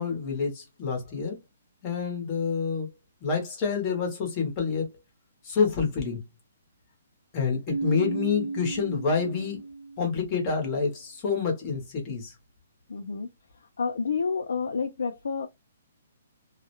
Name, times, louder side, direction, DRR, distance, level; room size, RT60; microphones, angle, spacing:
voice 1, 0.0-1.4 1.8-2.9 3.2-4.9 5.4-6.2 7.3-9.6 10.0-12.3, left 5 dB, 20° left, 0.8 m, -28 dB
Keyboard (musical), 7.7-10.3, right 3 dB, 50° right, 0.3 m, -33 dB
voice 2, 12.9-13.3 13.8-15.5, left 5 dB, 80° left, 0.5 m, -29 dB
2.3 x 2.0 x 2.9 m
hypercardioid pair, 175°, 0 cm